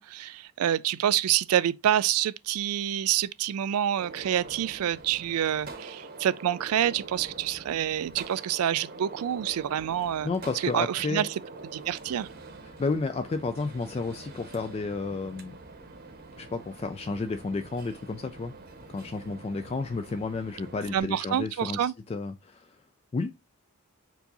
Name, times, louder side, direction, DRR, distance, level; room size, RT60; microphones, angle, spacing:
voice 1, 0.0-10.3 10.6-11.3 11.7-12.3 20.9-21.9, right 10 dB, 85° right, 0.3 m, -27 dB
Gunshot gunfire, 4.0-21.0, right 3 dB, 45° right, 0.9 m, -45 dB
voice 2, 10.2-11.3 12.6-15.5 16.3-18.5 18.9-22.8 23.1-23.4, left 3 dB, 30° left, 0.3 m, -32 dB
4.6 x 2.7 x 4.0 m
head